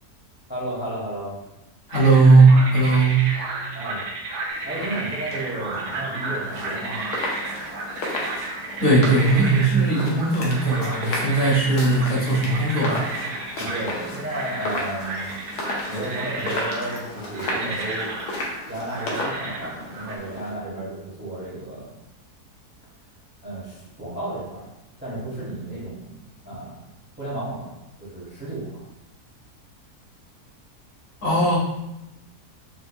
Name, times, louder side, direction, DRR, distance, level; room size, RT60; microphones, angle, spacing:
voice 1, 0.5-1.3 3.7-4.0 4.6-7.1 13.5-15.3 15.9-18.1 18.7-21.9 23.4-24.7 25.0-26.2 26.4-26.8 27.2-27.7 28.0-28.8, right 1 dB, 10° right, -6 dB, 0.6 m, -33 dB
voice 2, 1.9-3.2 8.8-13.0 31.2-31.6, right 3 dB, 55° left, -5 dB, 1.1 m, -18 dB
sound 1, 1.9-20.2, right 2 dB, 65° right, 0.7 m, -33 dB
sound 2, 4.5-20.5, left 1 dB, 80° left, 1.3 m, -34 dB
4.5 x 2.2 x 2.6 m, 0.93 s
omnidirectional pair, 1.7 m